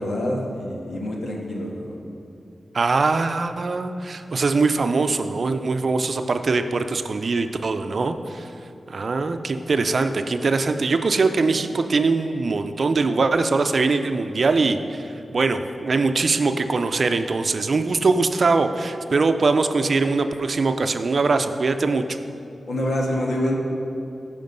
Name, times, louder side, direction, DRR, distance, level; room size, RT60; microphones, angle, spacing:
voice 1, 0.0-2.0 22.7-23.5, left 1 dB, 85° left, -1 dB, 1.6 m, -26 dB
voice 2, 2.7-8.5 8.9-15.0 15.3-22.2, right 3 dB, 60° right, 8 dB, 0.5 m, -22 dB
14.5 x 5.2 x 5.3 m, 2.8 s
wide cardioid pair, 90°, 0 cm